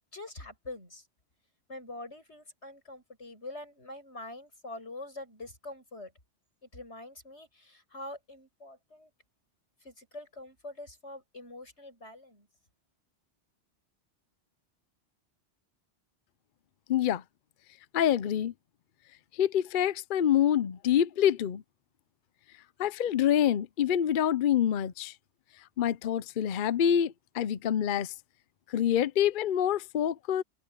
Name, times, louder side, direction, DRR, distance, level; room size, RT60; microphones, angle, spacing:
voice 1, 0.1-1.1 1.7-6.1 6.6-9.1 9.8-12.5, left 2 dB, 75° left, 7.8 m, -45 dB
voice 2, 16.9-17.2 17.9-18.5 19.3-21.6 22.8-25.1 25.8-28.1 28.7-30.4, left 10 dB, 55° left, 0.7 m, -26 dB
omnidirectional pair, 1.1 m